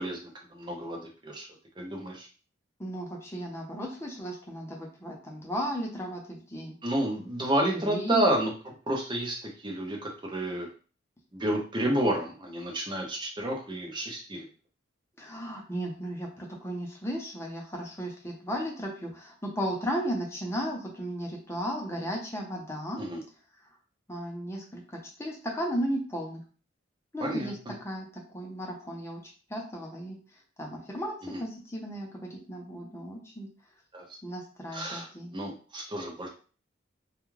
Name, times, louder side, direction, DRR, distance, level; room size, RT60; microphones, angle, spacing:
voice 1, 0.0-1.5 1.8-2.3 6.8-8.5 8.9-10.7 11.3-14.5 23.0-23.2 27.2-27.5 31.3-31.4 33.9-34.1 34.7-35.1 35.3-36.3, right 1 dB, 25° right, -1 dB, 0.6 m, -30 dB
voice 2, 2.8-6.7 7.8-8.2 15.2-23.0 24.1-26.4 27.1-27.6 27.8-29.2 29.5-30.2 30.6-33.5 34.2-35.3, equal, 15° left, -1 dB, 0.6 m, -35 dB
2.4 x 2.3 x 3.1 m, 0.38 s
head